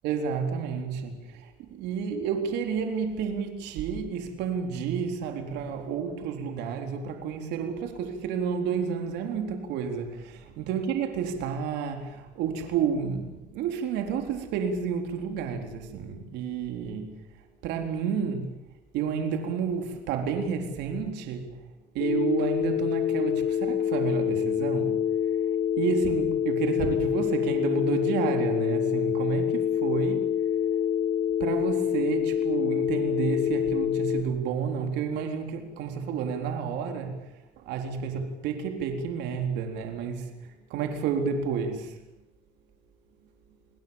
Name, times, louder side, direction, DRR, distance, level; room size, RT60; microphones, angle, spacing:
voice 1, 0.0-17.2 17.6-18.5 18.9-21.5 21.9-25.1 25.4-30.3 31.4-41.9, right 6 dB, 90° right, 3.9 m, -30 dB
Telephone, 22.0-34.2, left 9 dB, 70° left, 2.3 m, -26 dB
29.0 x 22.0 x 7.2 m
cardioid pair, 110°, 17 cm